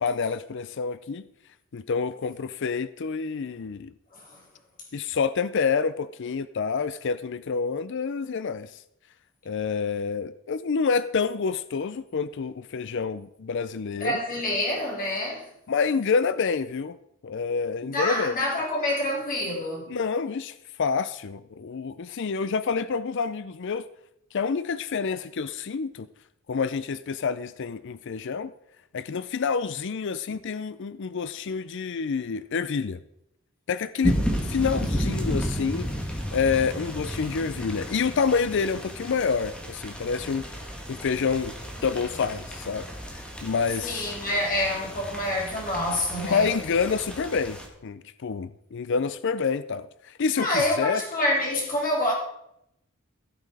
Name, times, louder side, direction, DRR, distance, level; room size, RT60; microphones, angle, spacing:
voice 1, 0.0-1.2 1.7-3.9 4.9-8.7 9.5-14.2 15.7-17.0 17.2-18.4 19.9-23.9 24.3-26.1 26.5-28.5 28.9-33.0 33.7-34.2 34.5-35.9 36.3-40.5 40.9-41.5 41.8-44.1 46.2-51.0, left 5 dB, 60° left, 14 dB, 0.5 m, -28 dB
voice 2, 14.0-15.5 17.8-20.0 43.8-46.5 50.4-52.1, left 1 dB, 40° left, -3 dB, 4.2 m, -27 dB
sound 1, 34.0-47.7, equal, 5° left, 2.0 m, -33 dB
15.5 x 7.6 x 4.8 m, 0.79 s
head